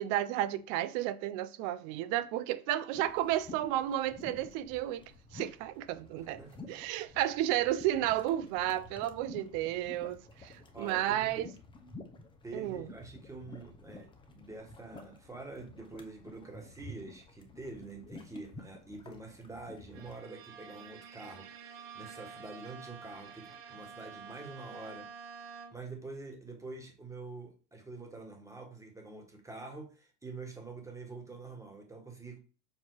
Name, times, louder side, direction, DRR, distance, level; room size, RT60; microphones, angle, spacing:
voice 1, 0.0-5.0 5.3-6.4 6.7-11.5 12.5-12.9, right 13 dB, 30° right, 0.4 m, -32 dB
sound 1, 2.9-20.2, left 3 dB, 10° left, 0.7 m, -51 dB
voice 2, 6.4-6.7 10.7-11.5 12.4-32.4, right 3 dB, 5° right, 1.5 m, -46 dB
Bowed string instrument, 19.9-26.0, right 6 dB, 55° right, 1.6 m, -49 dB
7.2 x 2.8 x 4.7 m
hypercardioid pair, 125°, 47 cm